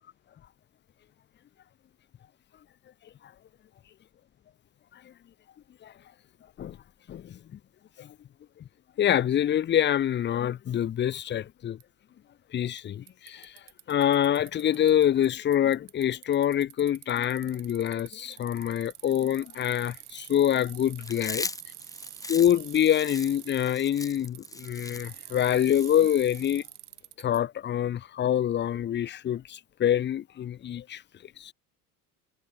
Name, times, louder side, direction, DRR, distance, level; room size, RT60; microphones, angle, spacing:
voice 1, 7.1-7.6 8.0-8.1 9.0-11.8 12.5-13.6 13.9-21.4 22.3-26.6 27.2-31.0 31.4-31.5, left 10 dB, 25° left, 0.6 m, -26 dB
Bicycle, 11.8-11.9 12.8-12.9 13.1-15.3 15.5-27.4, right 13 dB, 85° right, 0.9 m, -46 dB
Chewing mastication, 21.0-26.5, left 2 dB, 10° left, 1.0 m, -39 dB
hypercardioid pair, 70°, 44 cm